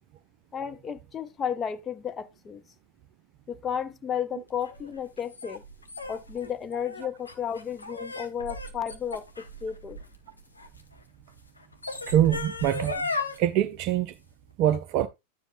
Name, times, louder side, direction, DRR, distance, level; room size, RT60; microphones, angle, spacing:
voice 1, 0.5-2.6 3.5-5.6 6.1-10.0, left 8 dB, 20° left, 0.6 m, -33 dB
sound 1, 4.6-10.8 11.6-13.4, left 3 dB, 80° left, 1.1 m, -36 dB
voice 2, 12.1-13.1 13.4-14.1 14.6-15.1, right 12 dB, 40° right, 0.5 m, -24 dB
11.0 x 7.2 x 2.6 m
figure-of-eight pair, 90°, 0 cm